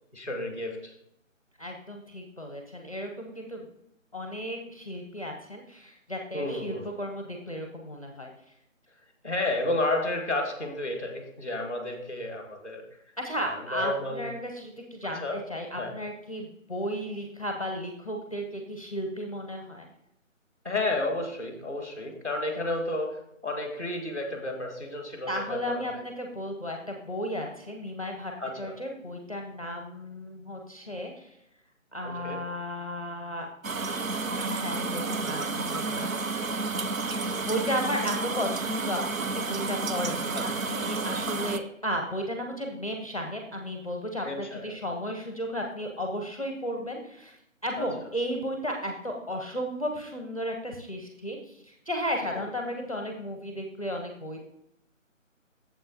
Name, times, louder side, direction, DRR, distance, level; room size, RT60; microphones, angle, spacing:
voice 1, 0.1-0.9 6.3-6.9 9.2-12.8 13.4-14.2 15.1-15.4 15.8-15.9 20.6-26.0 28.4-28.8 32.0-32.4 40.3-41.2 44.2-44.7 47.8-48.1 52.3-52.4, left 2 dB, 10° right, 2 dB, 0.9 m, -32 dB
voice 2, 1.6-3.7 4.1-8.3 13.2-19.9 25.3-31.4 31.9-33.5 34.4-36.8 37.4-47.4 47.6-54.4, equal, 25° left, 3 dB, 0.7 m, -34 dB
sound 1, 33.6-41.6, right 3 dB, 80° right, 0.7 m, -31 dB
8.7 x 7.3 x 2.8 m, 0.78 s
figure-of-eight pair, 155°, 40 cm